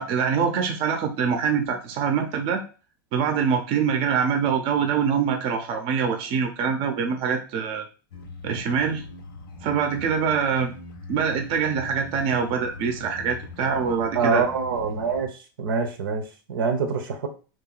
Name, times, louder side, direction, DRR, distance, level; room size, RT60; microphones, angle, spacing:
voice 1, 0.0-2.6 3.1-7.8 8.4-9.0 9.6-10.7 11.1-14.4, right 6 dB, 50° right, 5 dB, 0.7 m, -24 dB
sound 1, 8.1-15.3, left 3 dB, 85° left, 1.0 m, -41 dB
voice 2, 14.1-17.3, right 5 dB, 85° right, 5 dB, 0.9 m, -25 dB
2.9 x 2.6 x 3.9 m, 0.35 s
hypercardioid pair, 115°, 11 cm